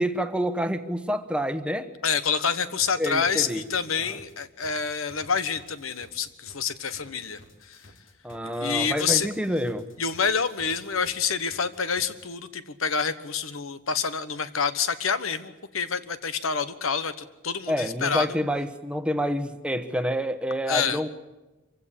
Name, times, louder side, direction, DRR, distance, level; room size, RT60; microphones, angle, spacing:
voice 1, 0.0-1.9 3.0-3.6 4.1-4.2 8.2-9.9 17.7-21.1, equal, 5° right, 9 dB, 1.1 m, -28 dB
voice 2, 2.0-7.4 7.7-7.8 8.4-9.3 10.0-17.1 17.4-18.3 20.7-21.0, left 6 dB, 85° left, 12 dB, 1.3 m, -27 dB
sound 1, 2.5-12.2, left 2 dB, 70° left, 3.3 m, -53 dB
25.0 x 16.5 x 8.6 m, 1.1 s
head